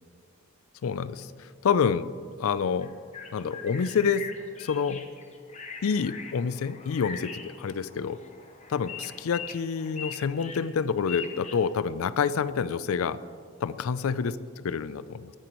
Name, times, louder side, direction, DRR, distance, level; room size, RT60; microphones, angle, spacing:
voice 1, 0.8-1.3 1.6-2.1 2.4-2.9 3.3-4.3 4.6-5.1 5.8-8.2 8.7-13.2 13.6-14.3 14.6-15.3, left 6 dB, 90° left, 16 dB, 0.4 m, -27 dB
sound 1, 2.8-11.6, left 6 dB, 35° left, 0.9 m, -42 dB
18.5 x 11.0 x 3.0 m, 2.1 s
head